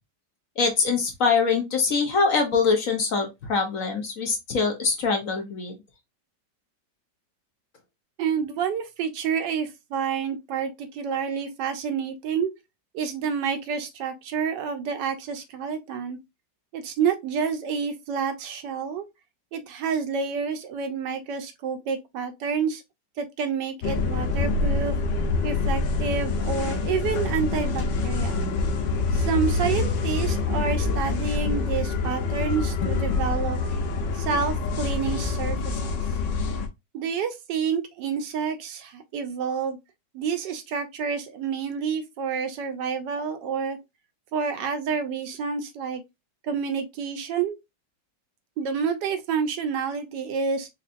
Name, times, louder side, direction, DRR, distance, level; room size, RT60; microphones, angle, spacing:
voice 1, 0.6-5.7, left 4 dB, 55° left, 1.1 m, -23 dB
voice 2, 8.2-12.5 12.9-16.2 16.7-19.0 19.5-22.8 23.2-25.0 25.4-28.5 29.1-33.6 34.1-36.0 36.9-39.8 40.1-43.8 44.3-46.0 46.4-47.6 48.6-50.7, right 6 dB, 80° right, 1.3 m, -29 dB
sound 1, 23.8-36.7, left 4 dB, 90° left, 1.4 m, -26 dB
4.6 x 2.6 x 2.5 m
omnidirectional pair, 1.9 m